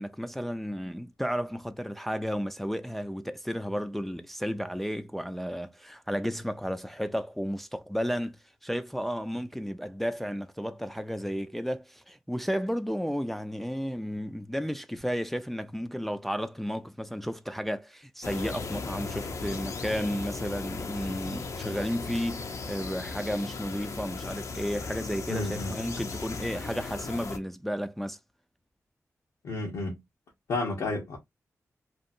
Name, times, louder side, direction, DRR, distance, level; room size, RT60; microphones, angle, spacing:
voice 1, 0.0-28.2, equal, 5° left, 0.3 m, -33 dB
sound 1, 18.2-27.4, left 4 dB, 65° left, 0.5 m, -37 dB
voice 2, 25.3-25.7 29.4-30.0 30.5-31.2, left 2 dB, 90° left, 0.8 m, -31 dB
2.7 x 2.3 x 2.5 m
cardioid pair, 65°, 6 cm